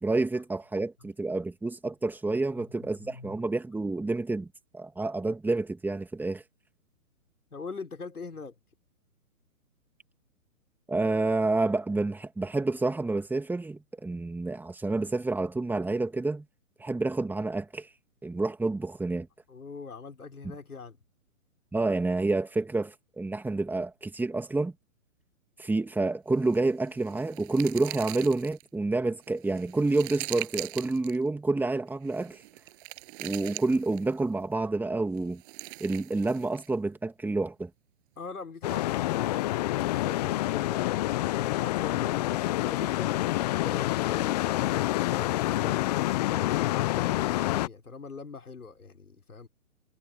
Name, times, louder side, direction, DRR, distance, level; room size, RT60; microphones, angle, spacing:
voice 1, 0.0-4.5 4.7-6.4 10.9-16.4 16.8-17.9 18.2-19.3 21.7-24.7 25.6-32.4 33.2-35.4 35.8-37.7, right 2 dB, 5° right, 2.6 m, -29 dB
voice 2, 3.0-3.4 7.5-8.6 19.5-21.0 38.2-49.5, left 4 dB, 85° left, 5.4 m, -43 dB
sound 1, 26.4-28.7 29.2-31.2 32.0-34.2 35.2-36.7, right 22 dB, 35° right, 7.6 m, -42 dB
sound 2, 38.6-47.7, left 16 dB, 30° left, 0.7 m, -27 dB
hypercardioid pair, 130°, 43 cm